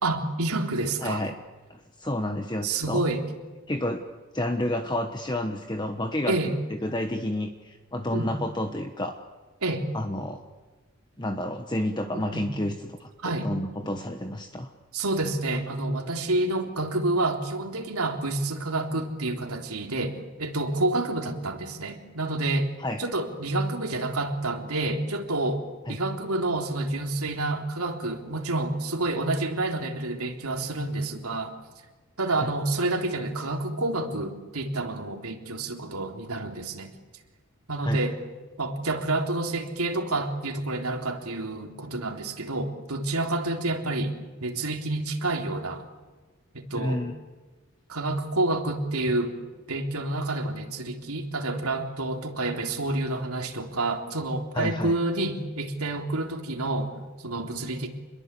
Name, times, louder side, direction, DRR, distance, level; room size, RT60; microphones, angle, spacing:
voice 1, 0.0-1.3 2.6-3.2 6.3-6.6 8.1-8.3 9.6-9.9 12.1-12.5 13.2-13.5 14.9-22.7 23.0-25.6 25.9-31.5 32.2-36.9 37.7-38.2 38.6-45.9 46.5-47.0 47.9-49.4 49.7-57.9, right 2 dB, 85° right, 3 dB, 3.6 m, -28 dB
voice 2, 1.0-1.3 1.7-3.0 3.7-4.0 4.3-6.4 6.8-9.2 9.9-10.4 11.2-14.7 22.8-23.1 25.9-26.0 32.4-32.5 37.8-38.0 46.7-47.1 54.5-54.9, left 1 dB, 20° left, 5 dB, 1.2 m, -30 dB
28.5 x 22.0 x 8.4 m, 1.3 s
head